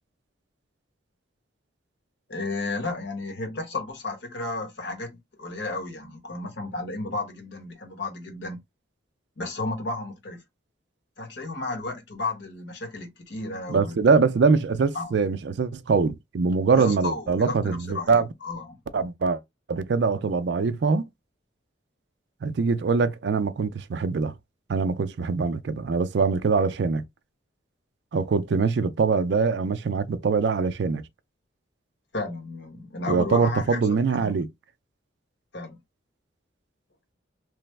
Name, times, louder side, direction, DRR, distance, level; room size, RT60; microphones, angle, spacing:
voice 1, 2.3-8.6 9.4-10.4 11.2-14.0 14.9-15.1 16.7-18.8 32.1-34.3 35.5-35.8, left 2 dB, 70° left, 1.1 m, -33 dB
voice 2, 13.7-18.2 18.9-19.4 19.7-21.0 22.4-24.3 24.7-27.0 28.1-31.0 33.1-34.5, right 4 dB, 60° right, 0.4 m, -23 dB
3.2 x 2.0 x 3.2 m
head